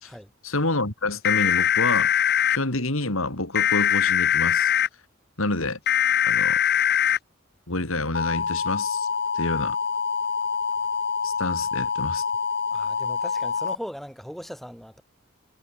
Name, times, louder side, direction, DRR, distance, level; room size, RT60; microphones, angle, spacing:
voice 1, 0.4-2.1 2.5-4.7 5.4-5.8 6.3-6.6 7.7-9.1 9.3-9.8 11.2-12.2, left 2 dB, 75° left, 3.8 m, -28 dB
sound 1, 1.2-2.6 3.5-4.9 5.9-7.2 8.1-13.7, left 8 dB, 45° left, 0.8 m, -23 dB
voice 2, 12.7-15.0, equal, ahead, 4.4 m, -39 dB
head